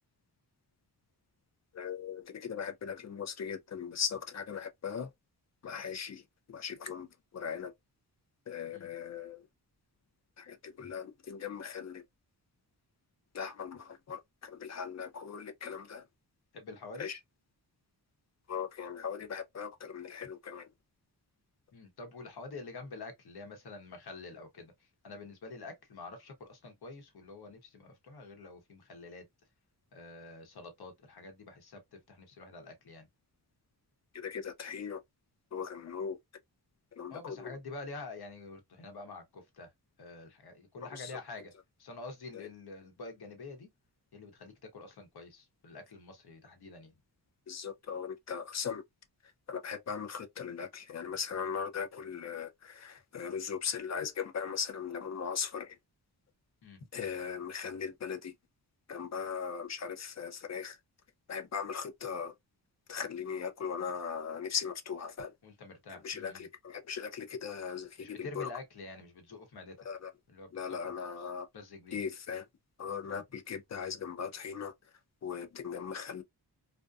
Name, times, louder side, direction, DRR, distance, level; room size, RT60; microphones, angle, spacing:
voice 1, 1.7-5.1 5.6-6.2 6.5-7.1 7.3-7.7 8.5-9.4 10.4-12.0 13.3-16.0 17.0-17.2 18.5-20.7 34.1-35.0 35.5-36.2 37.0-37.5 40.9-41.1 47.5-48.8 49.5-55.8 56.9-58.3 58.9-60.8 61.3-62.3 62.9-65.3 66.0-68.5 69.9-70.1 70.5-71.5 71.9-72.4 72.8-74.7 75.2-76.2, left 7 dB, 40° left, 0.5 m, -38 dB
voice 2, 16.5-17.1 21.7-29.2 29.9-33.1 37.1-39.7 40.0-41.5 41.8-43.7 44.1-46.9 56.6-56.9 65.4-66.5 68.0-69.9 70.3-72.0 73.1-73.2, left 3 dB, 65° left, 1.0 m, -47 dB
2.6 x 2.1 x 2.3 m
wide cardioid pair, 105°, 41 cm